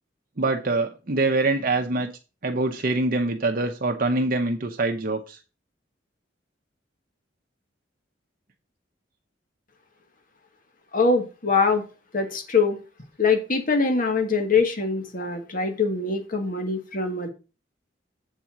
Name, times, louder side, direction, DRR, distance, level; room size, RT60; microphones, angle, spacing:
voice 1, 0.4-2.1 2.4-5.4, right 2 dB, 50° right, 4 dB, 0.8 m, -24 dB
voice 2, 10.9-11.8 12.1-12.8 13.2-17.3, left 4 dB, 45° left, 5 dB, 1.6 m, -23 dB
8.1 x 4.3 x 6.0 m, 0.32 s
head